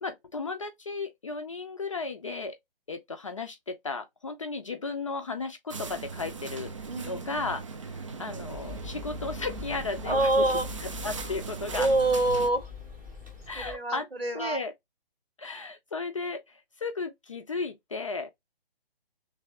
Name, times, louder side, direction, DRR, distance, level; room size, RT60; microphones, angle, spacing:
voice 1, 0.0-2.6 2.9-10.5 10.8-11.9 13.5-14.1 14.3-14.7 15.4-18.3, left 3 dB, 35° left, 0.4 m, -35 dB
sound 1, 5.7-12.5, right 4 dB, 35° right, 0.4 m, -39 dB
voice 2, 6.9-7.4 10.0-10.7 11.7-12.7 13.5-14.6, right 2 dB, 90° right, 1.3 m, -26 dB
sound 2, 8.5-13.8, left 7 dB, 5° right, 0.7 m, -43 dB
3.4 x 3.3 x 2.8 m
figure-of-eight pair, 135°, 29 cm